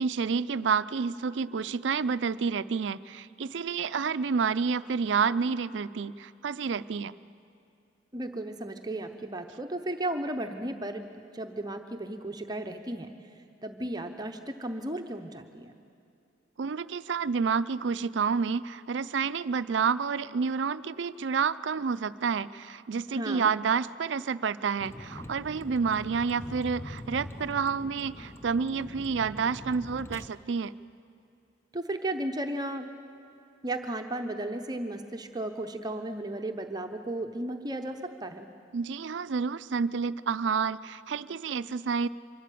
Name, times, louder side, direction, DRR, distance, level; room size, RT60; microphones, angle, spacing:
voice 1, 0.0-7.1 16.6-30.7 38.7-42.1, right 5 dB, 70° right, 15 dB, 0.5 m, -29 dB
voice 2, 8.1-11.1 11.3-13.1 13.6-15.7 23.1-23.5 31.7-32.9 33.6-38.5, right 1 dB, 20° right, 5 dB, 0.8 m, -34 dB
Vehicle, 24.8-30.3, left 1 dB, 15° left, 0.6 m, -43 dB
24.5 x 12.5 x 8.5 m, 2.6 s
head